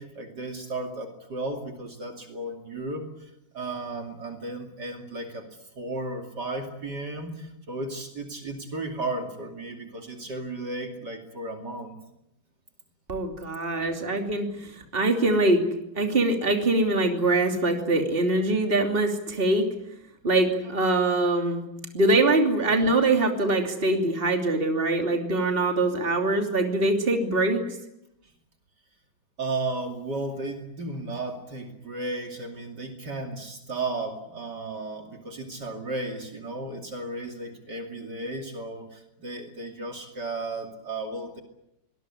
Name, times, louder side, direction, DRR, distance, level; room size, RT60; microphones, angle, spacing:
voice 1, 0.0-5.4 5.8-12.0 29.4-41.4, right 2 dB, 55° right, 4 dB, 3.2 m, -34 dB
voice 2, 13.1-14.5 14.9-15.6 15.9-19.7 20.2-21.6 21.9-27.6, right 2 dB, 25° right, 4 dB, 3.1 m, -23 dB
24.0 x 20.0 x 9.9 m, 0.84 s
omnidirectional pair, 2.2 m